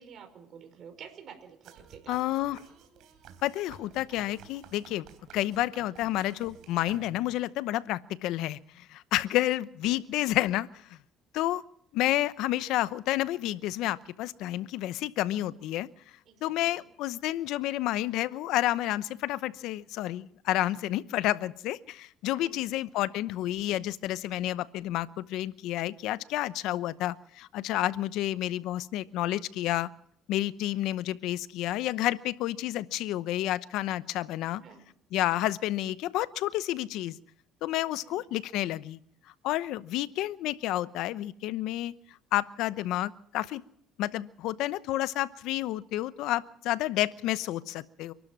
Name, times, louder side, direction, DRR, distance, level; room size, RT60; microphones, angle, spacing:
voice 1, 0.0-2.2 9.3-9.4 16.3-16.8 22.3-22.7 34.6-34.9 38.0-38.2, right 7 dB, 50° right, 6 dB, 5.1 m, -50 dB
sound 1, 1.6-7.5, right 8 dB, 70° right, 3.6 m, -53 dB
voice 2, 2.1-2.6 3.4-5.1 5.3-11.0 11.3-11.6 11.9-15.9 16.4-29.9 30.3-34.6 35.1-37.2 37.6-39.0 39.4-41.9 42.3-43.6 44.0-48.1, left 15 dB, 75° left, 16 dB, 0.8 m, -30 dB
28.5 x 12.5 x 7.4 m, 0.64 s
cardioid pair, 105°, 0 cm